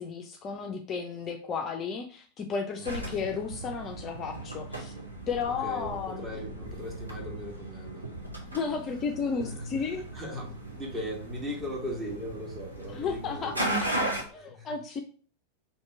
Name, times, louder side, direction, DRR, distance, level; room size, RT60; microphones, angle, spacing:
voice 1, 0.0-4.9 5.3-6.4 8.4-10.1 12.9-13.6 14.3-15.0, left 5 dB, 30° left, 3 dB, 0.4 m, -33 dB
voice 2, 2.8-3.2 5.6-8.2 9.4-13.6 14.3-14.7, equal, 15° right, -1 dB, 1.3 m, -39 dB
sound 1, 2.8-14.2, right 1 dB, 85° right, 0.8 m, -37 dB
2.9 x 2.8 x 4.4 m, 0.42 s
figure-of-eight pair, 90°, 0 cm